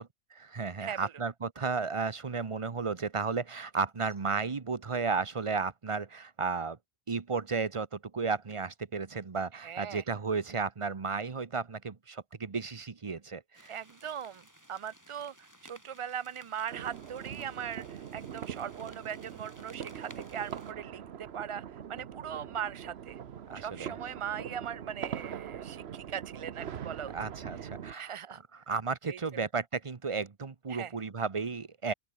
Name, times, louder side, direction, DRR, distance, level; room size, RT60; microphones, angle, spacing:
voice 1, 0.0-6.8 7.1-13.7 23.5-23.9 27.1-28.1 28.5-31.9, right 4 dB, 30° right, 0.9 m, -33 dB
voice 2, 0.8-1.1 9.6-10.0 13.7-14.4 14.7-21.6 21.9-23.2 23.5-27.1 27.6-27.7 28.0-28.4 29.1-29.2 30.7-30.9, right 8 dB, 45° right, 0.4 m, -40 dB
sound 1, 13.5-20.7, equal, 15° right, 7.9 m, -57 dB
sound 2, 16.7-27.9, right 8 dB, 80° right, 1.1 m, -42 dB
open air
omnidirectional pair, 1.1 m